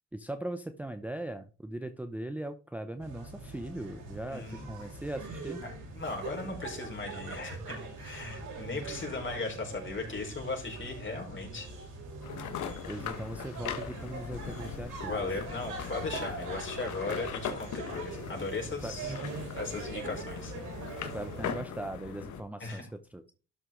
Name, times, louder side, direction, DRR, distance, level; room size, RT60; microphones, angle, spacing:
voice 1, 0.1-5.6 8.8-8.9 12.9-15.3 18.8-19.0 20.0-20.3 21.1-23.3, right 1 dB, 5° right, 8 dB, 0.6 m, -39 dB
sound 1, 3.0-21.5, right 3 dB, 85° right, 4.5 m, -42 dB
voice 2, 4.3-4.7 5.9-11.7 15.1-19.1 19.6-20.5 22.6-22.8, left 3 dB, 40° left, 1 dB, 4.6 m, -37 dB
sound 2, 12.2-22.4, left 7 dB, 75° left, 1.5 m, -40 dB
12.5 x 6.3 x 3.8 m, 0.37 s
cardioid pair, 90°, 30 cm